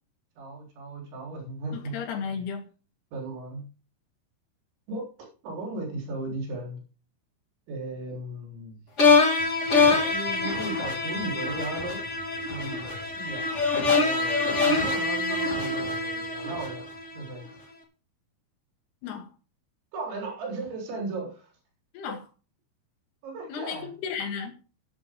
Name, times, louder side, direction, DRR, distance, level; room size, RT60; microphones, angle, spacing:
voice 1, 0.4-2.0 3.1-3.6 4.9-6.8 7.7-8.8 9.9-12.0 12.5-16.9 17.1-17.5 19.9-21.5 23.2-23.9, right 2 dB, 90° right, 6.3 m, -36 dB
voice 2, 1.7-2.7 19.0-19.3 21.9-22.2 23.5-24.6, left 6 dB, 70° left, 3.9 m, -34 dB
sound 1, 9.0-17.2, left 4 dB, 40° left, 1.0 m, -24 dB
13.0 x 10.5 x 3.7 m
omnidirectional pair, 5.1 m